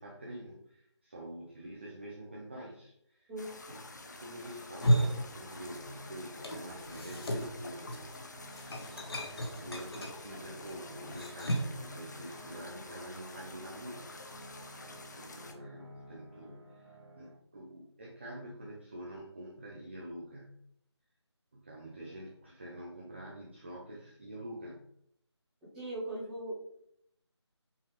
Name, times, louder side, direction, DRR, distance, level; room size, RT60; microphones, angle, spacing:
voice 1, 0.0-3.3 3.7-8.2 9.2-14.2 15.1-20.6 21.5-24.8, right 1 dB, 25° right, -3 dB, 0.5 m, -46 dB
sound 1, 3.4-15.5, left 2 dB, 40° left, 0.5 m, -49 dB
sound 2, 4.6-6.0 6.3-11.8, equal, 55° left, 1.0 m, -34 dB
sound 3, 5.3-17.3, right 1 dB, 90° right, 1.4 m, -54 dB
voice 2, 25.7-26.5, right 1 dB, 5° right, -12 dB, 1.2 m, -39 dB
5.5 x 2.8 x 3.2 m, 0.72 s
figure-of-eight pair, 160°, 15 cm